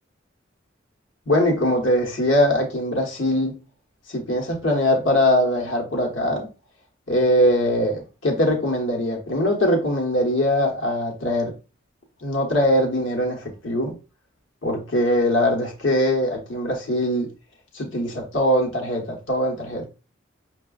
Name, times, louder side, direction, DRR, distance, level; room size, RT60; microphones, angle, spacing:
voice 1, 1.3-3.6 4.1-6.5 7.1-11.6 12.2-13.9 14.6-17.3 17.7-19.9, left 1 dB, 75° left, 1.0 m, -22 dB
5.8 x 2.2 x 2.3 m
head